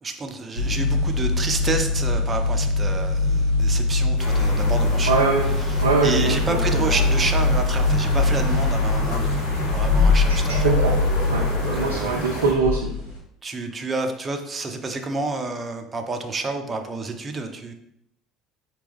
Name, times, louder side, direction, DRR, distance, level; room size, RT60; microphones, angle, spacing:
voice 1, 0.0-5.2 5.4-10.7 11.6-12.4 13.4-17.7, right 3 dB, 30° right, 6 dB, 0.6 m, -29 dB
sound 1, 0.6-13.2, left 3 dB, 90° left, 1.3 m, -22 dB
sound 2, 4.2-12.5, left 1 dB, 65° left, 1.1 m, -32 dB
voice 2, 5.1-5.4 5.8-6.3 6.8-6.9 10.6-10.9 11.3-12.8, right 4 dB, 80° right, -1 dB, 0.5 m, -22 dB
4.7 x 2.9 x 3.4 m, 0.77 s
figure-of-eight pair, 60°, 0 cm